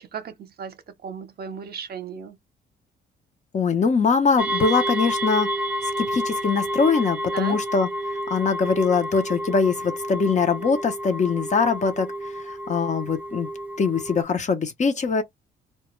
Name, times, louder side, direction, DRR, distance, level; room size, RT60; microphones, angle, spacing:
voice 1, 0.0-2.4 7.3-7.6, right 6 dB, 50° right, 0.6 m, -36 dB
voice 2, 3.5-5.5 5.8-7.9 8.3-12.1 12.4-13.5 13.8-15.2, left 5 dB, 35° left, 0.6 m, -22 dB
sound 1, 4.4-14.2, equal, 5° right, 0.3 m, -29 dB
2.2 x 2.1 x 3.0 m
cardioid pair, 90°, 20 cm